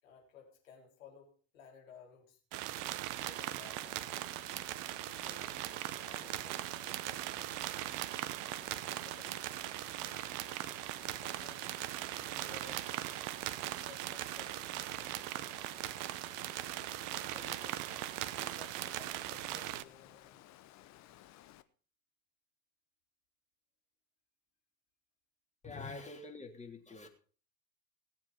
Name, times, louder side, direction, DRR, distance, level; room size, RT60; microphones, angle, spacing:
voice 1, 0.0-4.2 4.6-4.7 5.0-8.1 9.0-9.6 11.0-11.7 12.2-13.3 13.8-16.0 16.8-20.5, left 6 dB, 70° left, 1 dB, 3.7 m, -58 dB
sound 1, 2.5-19.8, right 15 dB, 45° right, 0.8 m, -40 dB
Water, 3.6-21.6, left 14 dB, 40° left, 0.9 m, -58 dB
voice 2, 25.6-27.1, left 3 dB, 15° left, 2 dB, 3.2 m, -45 dB
18.5 x 7.6 x 5.5 m, 0.40 s
figure-of-eight pair, 75°, 41 cm